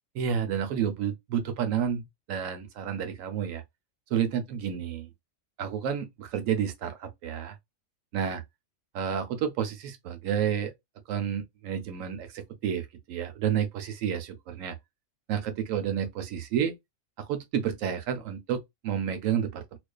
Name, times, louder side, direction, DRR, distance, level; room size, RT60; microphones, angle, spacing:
voice 1, 0.1-3.6 4.1-5.1 5.6-7.6 8.1-8.4 8.9-10.7 11.1-14.8 15.3-16.7 17.2-19.8, right 8 dB, 80° right, 1.0 m, -30 dB
2.4 x 2.3 x 2.2 m
omnidirectional pair, 1.4 m